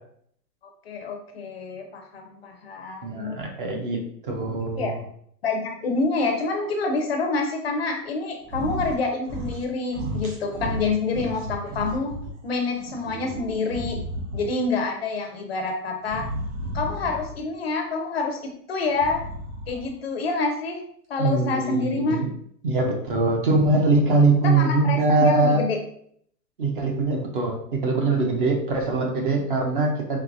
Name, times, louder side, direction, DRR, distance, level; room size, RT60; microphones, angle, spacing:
voice 1, 0.9-3.4 4.4-5.0 5.4-12.1 12.4-14.0 14.3-16.3 16.7-19.2 19.7-20.8 21.1-22.2 24.4-25.8, left 3 dB, 40° left, 3 dB, 0.5 m, -27 dB
voice 2, 3.0-5.0 21.2-22.3 22.6-25.6 26.6-30.2, right 3 dB, 35° right, 2 dB, 0.6 m, -22 dB
sound 1, 8.4-9.0 9.2-9.7 9.9-12.3 12.7-14.7 16.0-17.4 18.9-19.9, equal, 55° right, 1.2 m, -33 dB
4.6 x 2.8 x 2.6 m, 0.65 s
hypercardioid pair, 145°, 50 cm